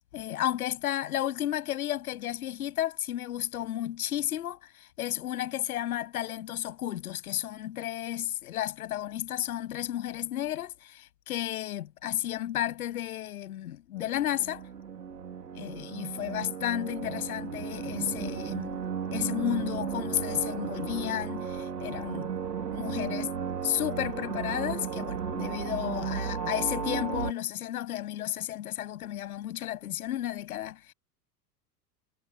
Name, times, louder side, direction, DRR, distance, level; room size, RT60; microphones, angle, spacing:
voice 1, 0.1-14.6 15.5-18.8 19.1-22.3 22.7-23.3 23.6-30.9, left 12 dB, 60° left, 7.4 m, -33 dB
sound 1, 14.0-27.3, right 7 dB, 75° right, 3.5 m, -34 dB
figure-of-eight pair, 90°, 49 cm